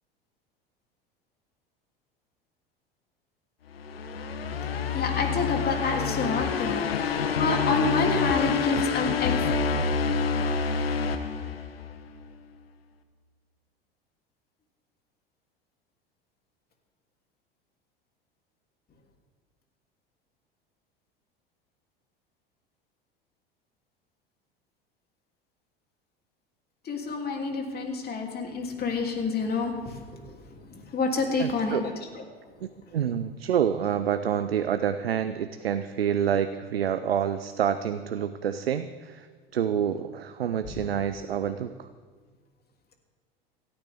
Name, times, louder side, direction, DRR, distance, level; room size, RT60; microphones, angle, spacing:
sound 1, 3.7-12.1, left 5 dB, 80° left, 1.1 m, -27 dB
voice 1, 4.9-9.3 26.9-29.7 30.9-31.9, left 3 dB, 30° left, 2 dB, 3.2 m, -28 dB
voice 2, 31.4-31.8 32.6-39.3 39.5-41.9, right 8 dB, 80° right, 11 dB, 0.6 m, -28 dB
28.5 x 9.7 x 3.7 m, 1.5 s
figure-of-eight pair, 75°, 29 cm